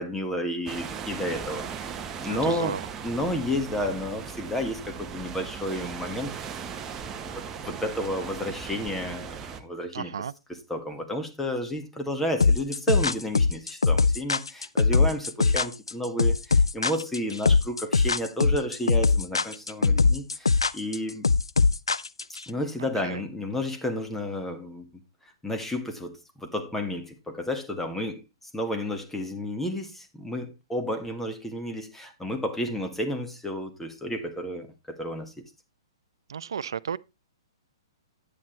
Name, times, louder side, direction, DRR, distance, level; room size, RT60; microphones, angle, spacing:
voice 1, 0.0-1.9 2.2-2.7 3.0-6.3 7.3-21.3 22.5-24.9 25.4-28.2 28.5-35.4, left 1 dB, 5° left, 1.7 m, -31 dB
sound 1, 0.7-9.6, right 7 dB, 20° right, 1.0 m, -38 dB
voice 2, 2.3-2.8 9.9-10.3 23.0-23.2 36.3-37.0, right 7 dB, 70° right, 0.5 m, -33 dB
sound 2, 12.4-22.4, left 4 dB, 85° left, 0.5 m, -21 dB
10.5 x 8.9 x 3.2 m
figure-of-eight pair, 120°, 3 cm